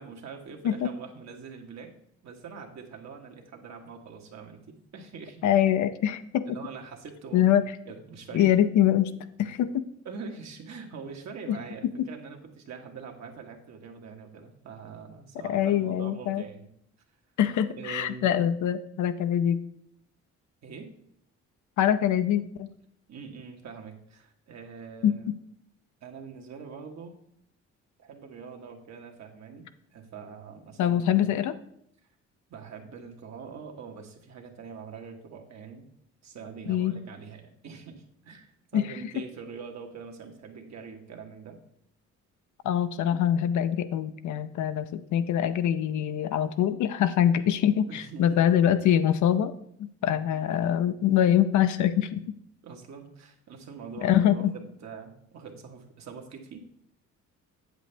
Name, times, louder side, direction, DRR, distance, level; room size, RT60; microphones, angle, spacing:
voice 1, 0.0-1.9 2.2-5.4 6.4-7.5 7.8-8.6 10.0-16.7 17.8-18.3 20.6-20.9 23.1-25.2 26.0-27.2 28.0-31.3 32.5-35.9 36.2-41.6 47.9-48.4 50.3-50.5 52.6-56.7, right 5 dB, 65° right, 2 dB, 1.4 m, -44 dB
voice 2, 5.4-6.5 7.3-7.6 8.3-9.1 9.4-9.9 11.5-11.6 15.4-16.4 17.4-19.6 21.8-22.7 25.0-25.2 30.8-31.5 36.7-37.0 38.7-38.9 42.6-49.5 50.0-52.2 54.0-54.5, left 10 dB, 75° left, 11 dB, 0.7 m, -24 dB
7.9 x 7.8 x 3.3 m, 0.71 s
cardioid pair, 90°, 30 cm